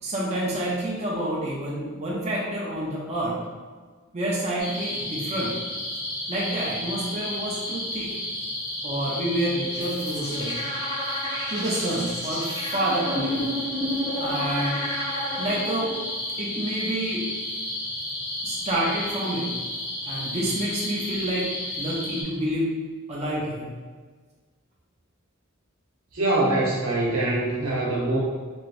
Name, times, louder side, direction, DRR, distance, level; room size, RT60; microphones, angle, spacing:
voice 1, 0.0-3.4 4.1-5.5 6.3-8.1 8.8-10.6 11.5-13.4 14.2-14.8 15.4-15.9 16.4-17.3 18.4-19.5 20.1-22.7 23.1-23.7, right 1 dB, 30° right, -5 dB, 0.5 m, -28 dB
sound 1, 4.6-22.2, left 1 dB, 55° left, 1.5 m, -32 dB
sound 2, 9.7-15.9, equal, 25° left, 1.3 m, -31 dB
voice 2, 26.1-28.2, right 2 dB, 85° right, -5 dB, 0.9 m, -23 dB
3.0 x 2.8 x 2.4 m, 1.5 s
head